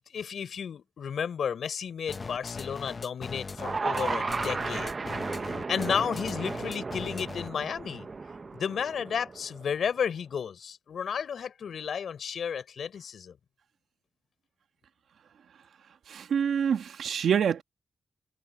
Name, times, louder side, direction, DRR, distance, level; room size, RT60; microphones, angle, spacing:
voice 1, 0.1-5.0 5.7-8.1 8.5-13.3, left 7 dB, 75° left, 4.0 m, -32 dB
sound 1, 2.1-7.6, left 4 dB, 35° left, 1.0 m, -39 dB
sound 2, 3.5-9.8, right 4 dB, 40° right, 0.8 m, -34 dB
voice 2, 16.1-17.6, right 8 dB, 85° right, 1.9 m, -26 dB
cardioid pair, 95°, 0 cm